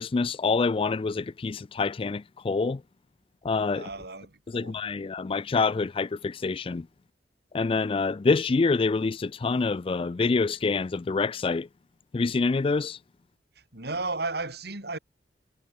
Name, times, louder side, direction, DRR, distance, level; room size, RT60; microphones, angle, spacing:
voice 1, 0.0-2.8 3.4-3.9 4.5-6.9 7.5-11.7 12.1-13.0, left 4 dB, 30° left, 0.4 m, -26 dB
voice 2, 3.7-4.7 13.7-15.0, right 3 dB, 60° right, 5.0 m, -34 dB
head